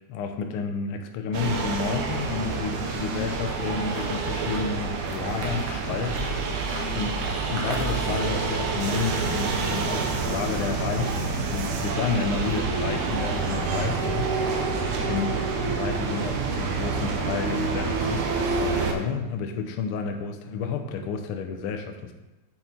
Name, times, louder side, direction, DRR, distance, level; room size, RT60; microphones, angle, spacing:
voice 1, 0.1-14.3 15.0-22.1, left 5 dB, 80° left, 5 dB, 1.2 m, -31 dB
sound 1, 1.3-18.9, right 4 dB, 90° right, 2.3 m, -28 dB
sound 2, 3.5-9.4, right 3 dB, 60° right, 1.3 m, -40 dB
8.7 x 4.2 x 4.5 m, 1.1 s
omnidirectional pair, 3.4 m